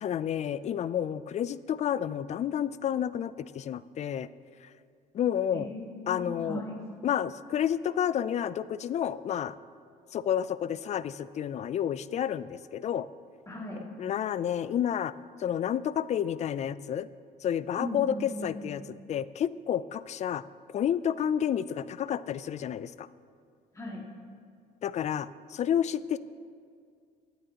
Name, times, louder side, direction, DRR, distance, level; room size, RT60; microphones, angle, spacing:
voice 1, 0.0-4.3 5.1-5.7 6.1-6.6 7.0-9.6 10.1-13.1 14.0-15.1 15.4-17.1 17.4-18.8 19.1-20.4 20.7-23.1 24.8-26.2, left 9 dB, 40° left, 16 dB, 0.4 m, -30 dB
voice 2, 5.5-6.8 13.5-13.8 17.8-18.7 23.7-24.0, left 1 dB, 20° left, -3 dB, 2.2 m, -37 dB
24.5 x 9.3 x 2.9 m, 2.2 s
cardioid pair, 110°, 17 cm